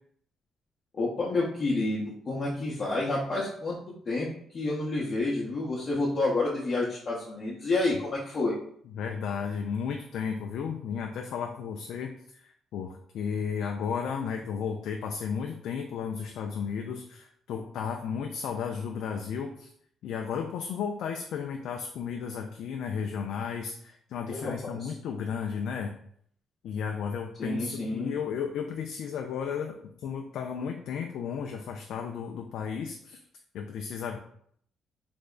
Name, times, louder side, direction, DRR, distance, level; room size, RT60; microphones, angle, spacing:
voice 1, 0.9-3.8 4.1-4.3 4.5-8.5 24.3-24.9 27.4-28.1, left 2 dB, 45° left, -6 dB, 0.8 m, -29 dB
voice 2, 8.9-19.7 20.0-25.9 26.6-33.2 33.5-34.2, left 6 dB, 75° left, 3 dB, 0.3 m, -34 dB
3.4 x 2.0 x 3.7 m, 0.64 s
cardioid pair, 90°, 0 cm